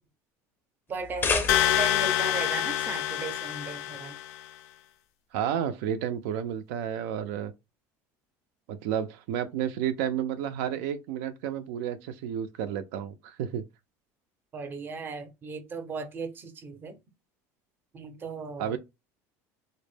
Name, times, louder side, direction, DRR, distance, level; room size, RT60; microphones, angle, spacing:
sound 1, 0.9-2.1, left 5 dB, 25° left, 0.4 m, -30 dB
voice 1, 0.9-4.2 14.5-17.0 17.9-18.8, right 3 dB, 25° right, 0.5 m, -36 dB
sound 2, 1.5-4.4, left 13 dB, 85° left, 0.4 m, -27 dB
voice 2, 5.3-7.5 8.7-13.6 18.6-18.8, right 9 dB, 80° right, 0.3 m, -31 dB
2.1 x 2.0 x 3.2 m
cardioid pair, 130°, 8 cm